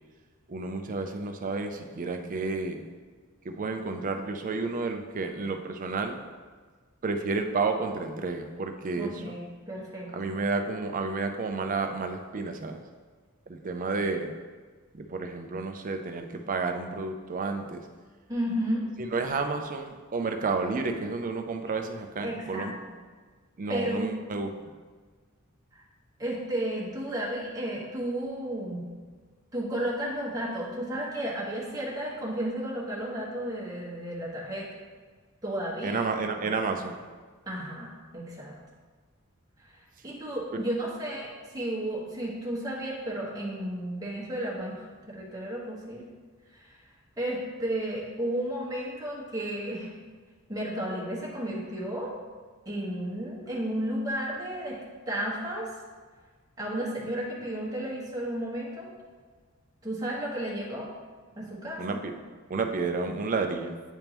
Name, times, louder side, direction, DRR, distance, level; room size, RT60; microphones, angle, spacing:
voice 1, 0.5-2.8 3.4-6.2 7.0-9.3 10.1-12.8 13.5-14.3 14.9-17.8 19.1-22.7 23.6-24.5 35.8-37.0 40.5-40.6 61.8-62.1 62.5-63.7, right 3 dB, 40° right, 5 dB, 0.5 m, -31 dB
voice 2, 8.9-10.3 18.3-18.9 22.2-22.7 23.7-24.1 25.7-25.8 26.2-28.8 29.5-34.7 35.4-36.0 36.4-36.5 37.5-38.6 39.6-39.7 40.0-44.8 45.1-46.0 46.5-46.8 47.2-49.9 50.5-52.2 52.6-55.7 56.6-58.9 59.8-60.9 61.4-62.0, right 1 dB, 15° right, -6 dB, 1.4 m, -33 dB
8.9 x 3.6 x 3.0 m, 1.5 s
head